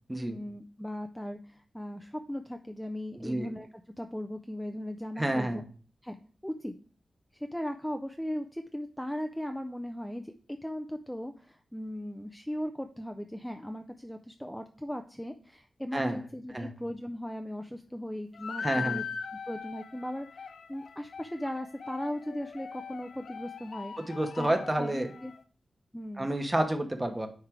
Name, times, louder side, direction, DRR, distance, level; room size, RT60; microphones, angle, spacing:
voice 1, 0.3-3.7 4.0-5.6 6.0-6.2 6.4-6.7 7.3-19.0 19.5-25.3 25.9-26.3, equal, 5° left, 6 dB, 0.4 m, -38 dB
voice 2, 5.2-5.6 15.9-16.2 16.5-16.7 18.6-19.0 24.1-25.1 26.2-27.3, right 1 dB, 15° right, 5 dB, 1.1 m, -29 dB
sound 1, 18.3-25.4, left 6 dB, 80° left, 0.6 m, -41 dB
9.5 x 3.3 x 4.7 m, 0.41 s
wide cardioid pair, 140°, 0 cm